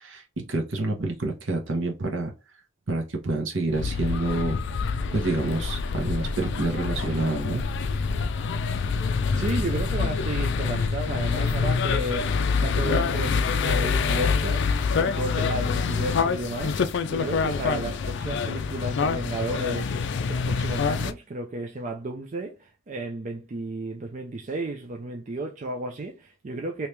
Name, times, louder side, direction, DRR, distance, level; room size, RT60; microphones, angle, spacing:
voice 1, 0.5-2.3 2.9-4.6 5.1-7.6, right 2 dB, 65° right, 1.1 m, -27 dB
sound 1, 3.7-21.1, left 5 dB, 60° left, 0.4 m, -26 dB
voice 2, 9.2-16.8 17.1-26.9, right 1 dB, 40° right, 0.4 m, -33 dB
3.1 x 2.9 x 3.3 m
head